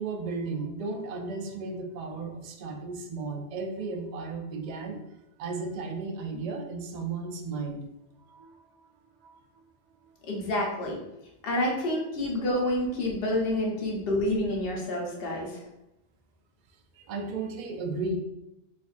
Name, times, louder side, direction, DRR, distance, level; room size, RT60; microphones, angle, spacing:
voice 1, 0.0-5.0 5.4-7.9 8.3-8.9 9.2-9.6 10.0-10.2 16.9-18.2, right 3 dB, 55° right, 4 dB, 0.5 m, -35 dB
voice 2, 10.3-11.0 11.4-15.5, left 1 dB, 65° left, -1 dB, 1.0 m, -28 dB
4.1 x 2.6 x 2.5 m, 0.89 s
omnidirectional pair, 1.1 m